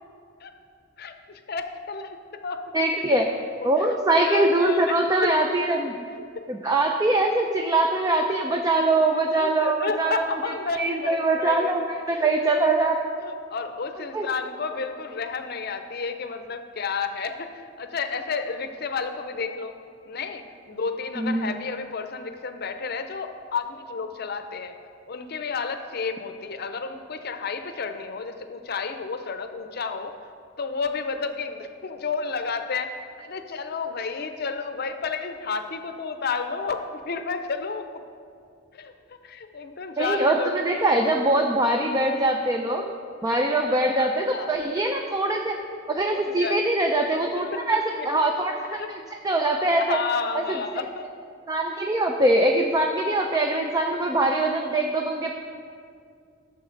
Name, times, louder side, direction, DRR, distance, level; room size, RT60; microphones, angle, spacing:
voice 1, 1.0-2.2 2.4-2.6 3.6-3.9 4.2-5.0 5.2-5.3 6.3-6.4 9.3-11.8 12.1-12.3 13.2-19.8 20.1-24.7 25.1-30.1 30.6-37.8 38.7-38.9 39.2-41.1 43.7-44.5 46.1-46.6 47.7-48.1 48.7-48.9 49.8-51.1 52.2-52.3, left 5 dB, 55° left, 8 dB, 0.6 m, -31 dB
voice 2, 2.7-3.3 3.6-6.1 6.5-13.0 14.1-14.3 21.2-21.6 40.0-42.8 43.2-45.6 45.9-48.8 49.2-50.0 50.3-50.6 51.5-55.4, right 2 dB, 20° right, 3 dB, 0.5 m, -23 dB
13.0 x 7.1 x 3.9 m, 2.3 s
head